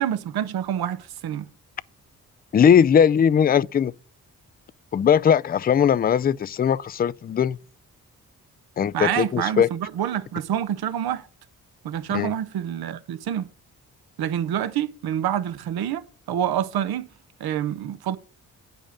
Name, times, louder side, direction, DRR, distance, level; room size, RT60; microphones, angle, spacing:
voice 1, 0.0-1.5 8.9-11.3 11.8-13.5 14.2-16.0 16.3-17.1 17.4-18.2, right 10 dB, 75° right, 0.8 m, -27 dB
voice 2, 2.5-3.9 4.9-7.6 8.8-9.7 12.1-12.3, left 8 dB, 25° left, 0.3 m, -19 dB
8.8 x 5.4 x 5.3 m
supercardioid pair, 45°, 38 cm